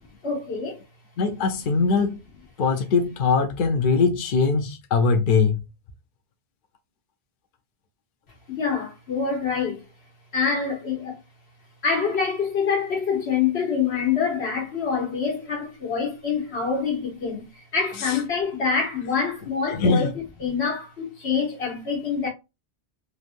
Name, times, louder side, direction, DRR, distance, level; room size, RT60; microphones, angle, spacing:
voice 1, 0.2-0.8 8.5-9.8 10.3-11.2 11.8-20.1 20.4-22.3, left 6 dB, 80° left, 1.5 m, -26 dB
voice 2, 1.2-2.2 2.6-5.6 18.0-18.2 19.7-20.1, left 4 dB, 60° left, 0.7 m, -21 dB
3.2 x 2.6 x 2.5 m
omnidirectional pair, 1.1 m